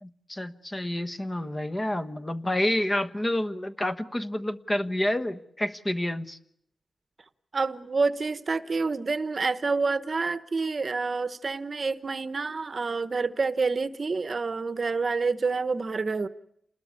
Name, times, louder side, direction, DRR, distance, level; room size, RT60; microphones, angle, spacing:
voice 1, 0.0-6.4, left 1 dB, 20° left, 1.1 m, -29 dB
voice 2, 7.5-16.3, right 4 dB, 40° right, 1.1 m, -28 dB
29.0 x 20.5 x 9.8 m
wide cardioid pair, 155°, 0 cm